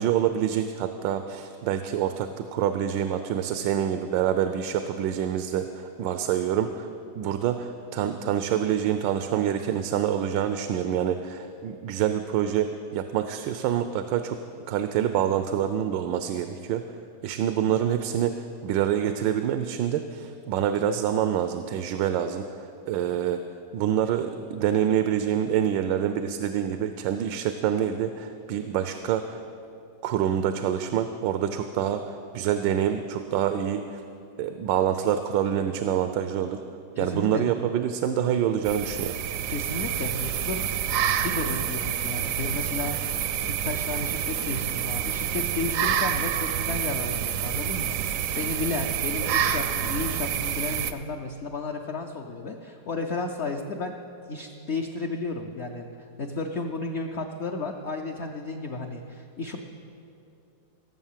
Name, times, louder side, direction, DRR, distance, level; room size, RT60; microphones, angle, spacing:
voice 1, 0.0-6.9 7.2-14.4 14.7-16.8 17.2-23.4 23.7-29.4 30.0-34.0 34.4-36.6 37.0-39.2, right 9 dB, 90° right, 9 dB, 1.3 m, -26 dB
voice 2, 36.9-37.5 39.5-40.6 41.2-43.2 43.5-54.0 54.3-59.6, left 3 dB, 60° left, 2 dB, 0.7 m, -33 dB
sound 1, 38.6-50.9, right 9 dB, 70° right, 0.8 m, -28 dB
17.0 x 7.2 x 7.4 m, 2.6 s
omnidirectional pair, 1.9 m